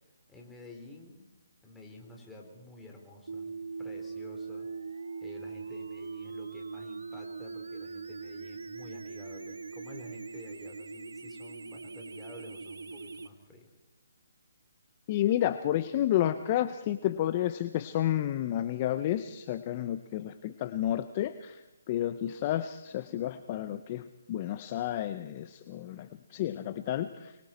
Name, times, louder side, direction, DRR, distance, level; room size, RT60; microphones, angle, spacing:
voice 1, 0.3-1.3 1.6-4.7 5.2-13.7, left 2 dB, 5° left, 0 dB, 3.6 m, -51 dB
sound 1, 3.3-13.3, right 4 dB, 85° right, 1.4 m, -41 dB
voice 2, 15.1-27.4, left 12 dB, 30° left, 11 dB, 0.8 m, -31 dB
24.5 x 24.0 x 4.4 m, 0.96 s
hypercardioid pair, 160°, 0 cm